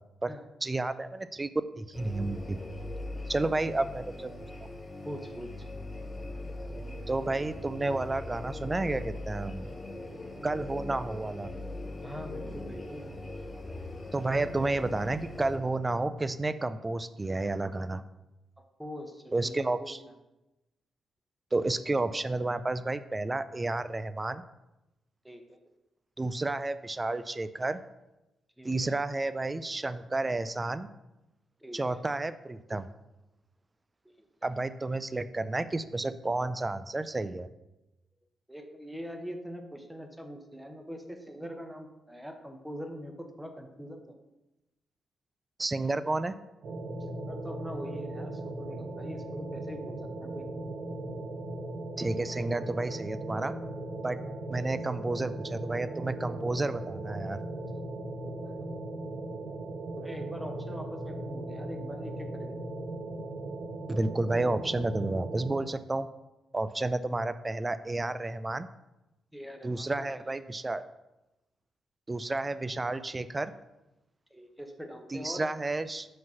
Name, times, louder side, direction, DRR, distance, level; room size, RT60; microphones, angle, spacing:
voice 1, 0.6-1.5 1.8-2.6 3.3-4.3 7.1-9.7 10.4-11.5 14.1-18.0 19.3-20.0 21.5-24.4 26.2-27.8 28.6-30.9 31.7-32.9 34.4-37.5 45.6-46.3 52.0-53.5 54.0-54.2 54.5-57.4 63.9-66.1 66.5-68.7 69.6-70.8 72.1-73.5 75.1-76.1, right 2 dB, 20° right, 13 dB, 0.4 m, -31 dB
sound 1, 1.9-15.6, left 2 dB, 20° left, 1.6 m, -40 dB
voice 2, 5.0-5.5 12.0-13.0 18.8-19.9 25.2-25.6 28.6-28.9 31.6-32.0 34.0-34.3 38.5-44.2 47.3-50.5 58.2-58.7 59.5-59.6 59.9-62.5 69.3-70.4 74.3-75.4, equal, 5° right, 5 dB, 0.9 m, -43 dB
sound 2, 46.6-65.6, right 2 dB, 65° right, 0.9 m, -38 dB
5.1 x 3.9 x 5.8 m, 0.97 s
cardioid pair, 85°, 0 cm